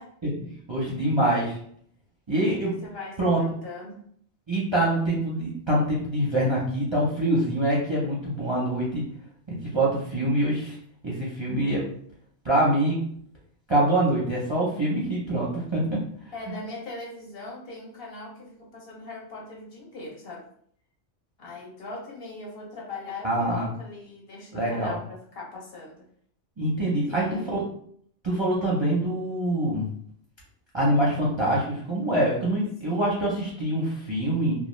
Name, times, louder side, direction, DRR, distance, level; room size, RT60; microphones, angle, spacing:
voice 1, 0.2-1.6 2.3-2.7 3.2-3.4 4.5-9.0 9.5-10.8 11.0-11.8 12.4-13.0 13.7-15.8 16.5-16.6 23.2-23.7 24.5-25.0 26.6-27.6 28.2-29.9 30.7-34.6, right 1 dB, 35° right, -5 dB, 0.5 m, -25 dB
voice 2, 2.5-4.0 16.3-20.5 21.4-26.0 27.1-27.5 32.8-33.0, left 3 dB, 60° left, -2 dB, 0.8 m, -40 dB
2.3 x 2.3 x 3.0 m, 0.63 s
omnidirectional pair, 1.2 m